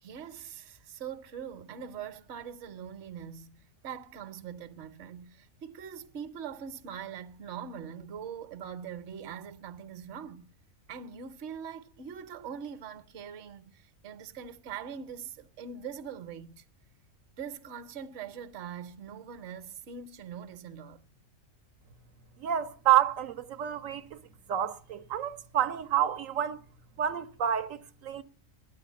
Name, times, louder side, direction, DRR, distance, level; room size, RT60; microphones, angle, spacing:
voice 1, 0.0-10.5 10.9-16.6 17.4-21.0, right 7 dB, 60° right, 1.1 m, -42 dB
voice 2, 22.4-24.2 24.5-26.6 27.0-28.2, right 11 dB, 85° right, 1.2 m, -29 dB
9.4 x 9.2 x 8.3 m
omnidirectional pair, 1.4 m